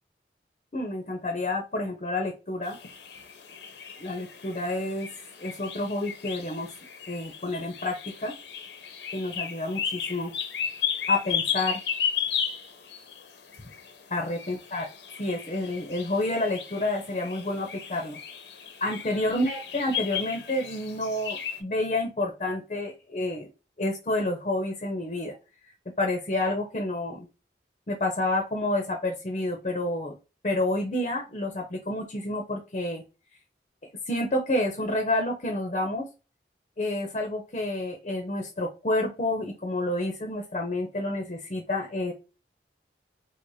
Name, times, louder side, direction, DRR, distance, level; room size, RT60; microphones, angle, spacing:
voice 1, 0.7-2.8 4.0-5.1 5.4-6.7 7.1-8.3 9.1-10.3 11.1-11.8 14.1-14.8 15.2-18.2 18.8-23.5 23.8-25.3 26.0-27.3 27.9-30.2 30.4-33.0 34.1-36.1 36.8-42.1, left 2 dB, 35° left, 3 dB, 0.6 m, -29 dB
sound 1, 2.6-21.6, left 8 dB, 75° left, 0.6 m, -35 dB
4.6 x 2.1 x 2.6 m, 0.30 s
head